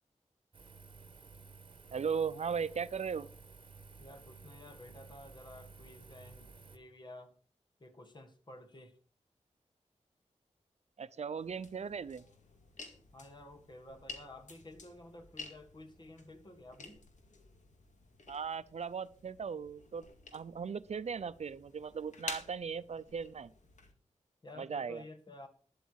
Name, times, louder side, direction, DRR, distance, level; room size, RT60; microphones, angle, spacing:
Engine, 0.5-6.8, right 4 dB, 45° right, 1.2 m, -54 dB
voice 1, 1.9-3.3 11.0-12.2 18.3-20.0 20.3-23.5 24.6-25.0, right 6 dB, 65° right, 15 dB, 0.6 m, -37 dB
voice 2, 4.0-7.3 7.8-9.0 13.1-17.0 24.4-25.5, left 1 dB, 40° left, 7 dB, 1.9 m, -52 dB
sound 1, 11.4-23.9, left 3 dB, 80° left, 2.3 m, -51 dB
12.5 x 10.5 x 4.7 m, 0.42 s
wide cardioid pair, 125°, 12 cm